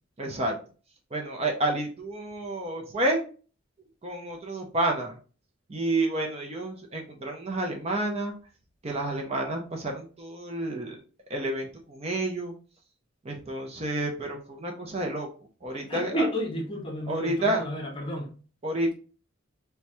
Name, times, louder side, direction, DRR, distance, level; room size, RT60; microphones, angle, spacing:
voice 1, 0.2-0.6 1.1-3.3 4.0-5.2 5.7-8.3 8.8-10.9 11.3-12.5 13.2-15.3 15.6-16.3 17.1-17.6 18.6-18.9, right 1 dB, 30° right, 0.6 m, -29 dB
voice 2, 15.7-18.3, equal, 25° left, 0.7 m, -32 dB
4.5 x 2.2 x 2.7 m
head